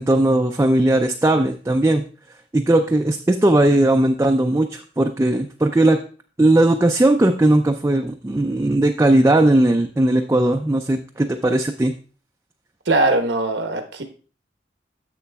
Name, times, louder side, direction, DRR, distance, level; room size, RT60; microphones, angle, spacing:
voice 1, 0.0-2.0 2.5-6.0 6.4-11.9, right 1 dB, 15° right, 3 dB, 0.4 m, -18 dB
voice 2, 12.9-14.0, right 2 dB, 85° right, 6 dB, 1.1 m, -20 dB
10.5 x 7.4 x 2.3 m, 0.38 s
head